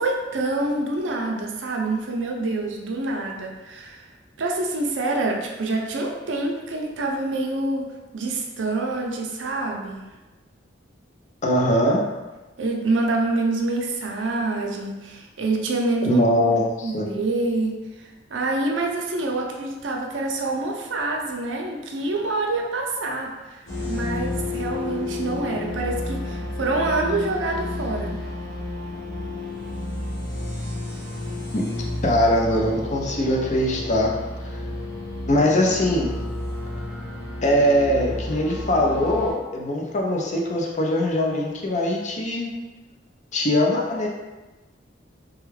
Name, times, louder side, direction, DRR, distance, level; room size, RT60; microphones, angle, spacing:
voice 1, 0.0-4.0 4.4-10.0 12.6-16.2 16.8-28.2, right 2 dB, 85° right, 1 dB, 0.6 m, -26 dB
voice 2, 11.4-12.0 16.0-17.1 31.5-31.6 32.0-34.1 34.4-34.6 35.3-36.2 37.4-42.5 43.3-44.1, left 1 dB, 40° left, -1 dB, 0.5 m, -21 dB
sound 1, 23.7-39.3, left 2 dB, 85° left, 1.4 m, -31 dB
3.4 x 2.3 x 3.2 m, 1.1 s
head